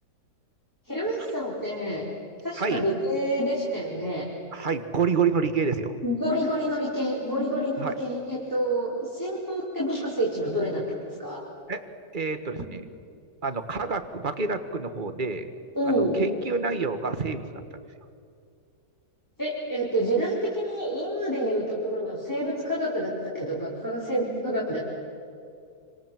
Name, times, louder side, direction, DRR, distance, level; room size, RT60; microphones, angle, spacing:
voice 1, 0.8-2.0 2.4-4.2 6.0-11.4 15.8-16.1 19.4-24.8, equal, 10° left, -6 dB, 4.4 m, -28 dB
voice 2, 4.5-6.0 7.8-7.9 11.7-11.8 12.1-12.8 13.4-15.5 15.8-17.6, right 5 dB, 25° right, 8 dB, 1.5 m, -28 dB
29.0 x 26.0 x 7.7 m, 2.4 s
omnidirectional pair, 2.1 m